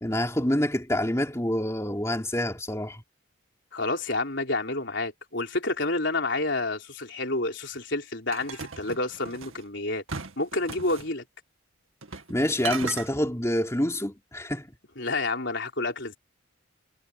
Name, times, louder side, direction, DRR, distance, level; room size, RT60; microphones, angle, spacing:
voice 1, 0.0-3.0 12.3-14.6, left 1 dB, 15° left, 3.3 m, -27 dB
voice 2, 3.7-10.0 10.4-11.2 15.0-16.2, left 2 dB, 55° left, 4.7 m, -29 dB
sound 1, 8.3-9.6 10.1-11.1 12.0-12.3 12.6-13.1, right 5 dB, 75° right, 2.1 m, -36 dB
head